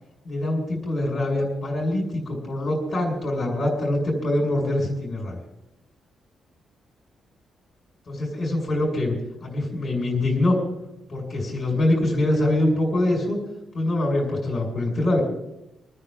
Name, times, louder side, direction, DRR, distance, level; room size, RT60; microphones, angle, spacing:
voice 1, 0.2-5.4 8.1-9.1 9.4-10.5 11.1-13.4 13.7-15.2, left 1 dB, 25° left, -4 dB, 5.5 m, -24 dB
27.5 x 9.6 x 3.8 m, 0.89 s
wide cardioid pair, 170°, 0 cm